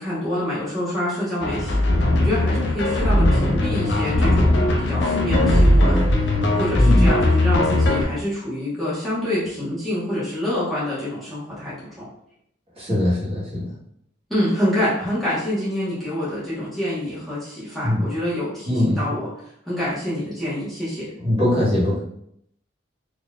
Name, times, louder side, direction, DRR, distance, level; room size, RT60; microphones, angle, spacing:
voice 1, 0.0-12.0 14.3-19.3 19.7-21.1, left 1 dB, ahead, -11 dB, 1.1 m, -26 dB
sound 1, 1.4-8.0, left 1 dB, 65° left, 0.5 m, -18 dB
voice 2, 6.7-7.1 12.8-13.7 17.8-18.0 18.7-19.1 21.2-22.0, left 1 dB, 30° right, -9 dB, 1.4 m, -21 dB
3.8 x 2.9 x 2.4 m, 0.72 s
head